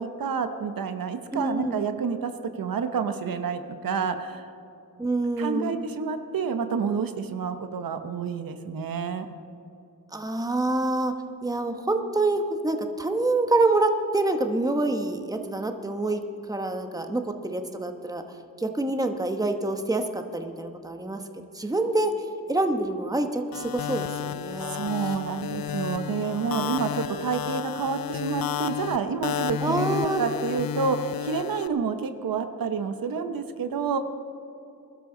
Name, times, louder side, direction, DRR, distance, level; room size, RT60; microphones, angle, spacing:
voice 1, 0.0-2.3 2.6-4.5 5.4-9.3 24.7-34.0, right 6 dB, 70° right, 8 dB, 1.0 m, -29 dB
voice 2, 1.3-1.8 5.0-5.7 10.1-11.1 11.4-16.2 16.5-18.2 18.6-21.2 21.5-22.1 22.5-24.8 29.6-30.2, right 2 dB, 10° right, 6 dB, 1.0 m, -26 dB
sound 1, 23.5-31.7, left 9 dB, 75° left, 0.6 m, -32 dB
22.0 x 12.5 x 3.9 m, 2.8 s
wide cardioid pair, 100°, 35 cm